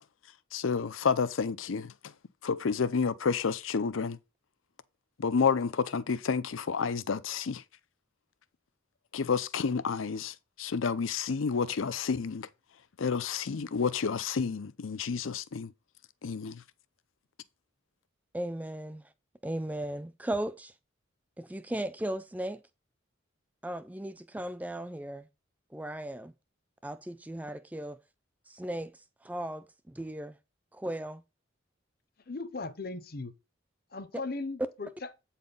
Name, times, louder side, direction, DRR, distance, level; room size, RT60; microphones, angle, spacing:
voice 1, 0.5-1.9 2.4-4.2 5.2-7.6 9.1-12.5 13.0-15.7 16.2-16.6, left 5 dB, 85° left, 0.6 m, -30 dB
voice 2, 18.3-19.1 19.4-20.7 21.4-22.6 23.6-25.3 25.7-26.3 26.8-28.0 28.5-30.4 30.7-31.2 34.1-34.2, right 1 dB, 10° right, 0.4 m, -36 dB
voice 3, 32.3-33.3 33.9-34.9, left 3 dB, 50° left, 0.7 m, -37 dB
8.5 x 4.2 x 5.3 m
head